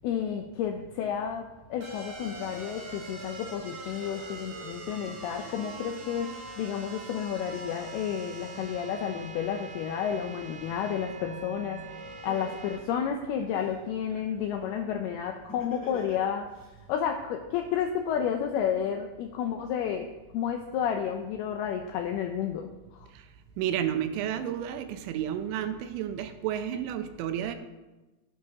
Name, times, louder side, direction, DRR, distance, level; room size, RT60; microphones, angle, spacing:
voice 1, 0.0-16.5 16.9-23.1, left 8 dB, 85° left, 4 dB, 2.3 m, -31 dB
sound 1, 1.8-12.8, right 2 dB, 50° right, 2.0 m, -43 dB
Laughter, 11.7-11.8 12.2-13.7 15.5-16.7, left 1 dB, 10° left, 0.9 m, -42 dB
voice 2, 23.6-27.6, right 10 dB, 80° right, 9 dB, 3.0 m, -31 dB
16.5 x 9.5 x 2.9 m, 1.1 s
omnidirectional pair, 5.3 m